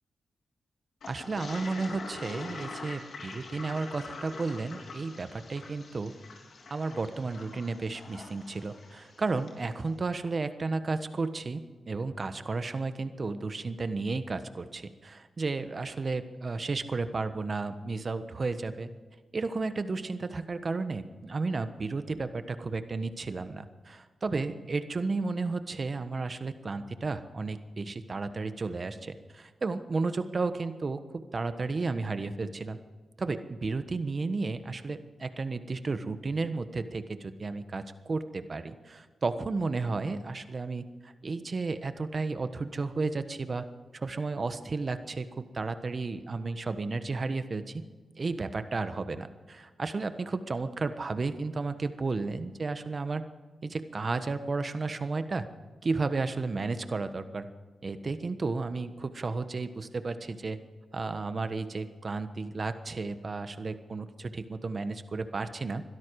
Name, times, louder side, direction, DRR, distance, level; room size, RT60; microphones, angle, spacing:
Toilet flush, 1.0-9.6, left 3 dB, 75° left, 3.2 m, -44 dB
voice 1, 1.1-6.1 6.7-18.9 19.3-32.8 33.2-43.6 43.9-47.8 48.1-53.2 53.6-55.4 55.8-57.5 57.8-60.6 60.9-65.8, right 3 dB, 50° right, 10 dB, 1.3 m, -33 dB
21.5 x 13.0 x 4.8 m, 1.4 s
cardioid pair, 55°, 0 cm